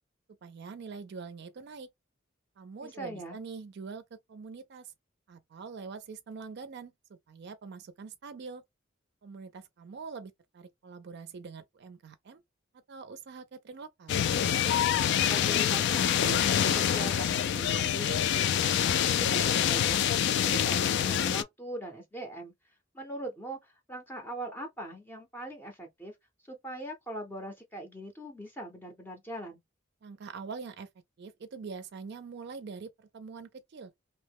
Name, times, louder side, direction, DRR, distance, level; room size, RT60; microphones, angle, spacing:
voice 1, 0.4-1.9 2.6-4.9 5.3-8.6 9.2-12.4 12.9-14.2 30.0-30.9 31.2-33.9, right 5 dB, 55° right, 0.4 m, -44 dB
voice 2, 2.8-3.4 15.3-22.5 22.9-26.2 26.5-29.6, right 1 dB, 10° left, 0.5 m, -41 dB
sound 1, 14.1-21.4, left 9 dB, 60° left, 0.3 m, -26 dB
2.8 x 2.1 x 3.4 m
head